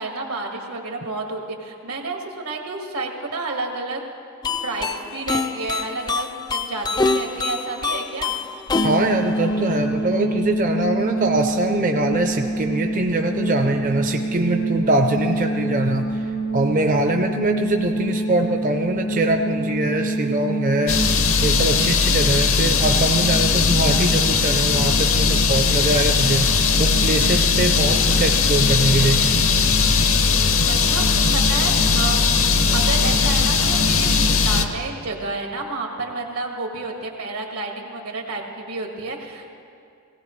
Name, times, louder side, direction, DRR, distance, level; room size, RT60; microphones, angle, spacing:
voice 1, 0.0-4.0 4.6-8.4 30.7-32.4 32.7-39.5, right 3 dB, 85° right, 1 dB, 1.8 m, -30 dB
sound 1, 4.4-10.3, left 4 dB, 20° left, 0.3 m, -26 dB
sound 2, 8.7-21.1, right 1 dB, 80° left, 1.6 m, -26 dB
voice 2, 8.8-16.3 16.5-21.0 21.4-26.5 26.8-29.3, right 2 dB, 40° right, 4 dB, 0.5 m, -23 dB
sound 3, 20.9-34.7, left 4 dB, 65° left, 0.7 m, -18 dB
18.0 x 16.5 x 3.2 m, 2.4 s
head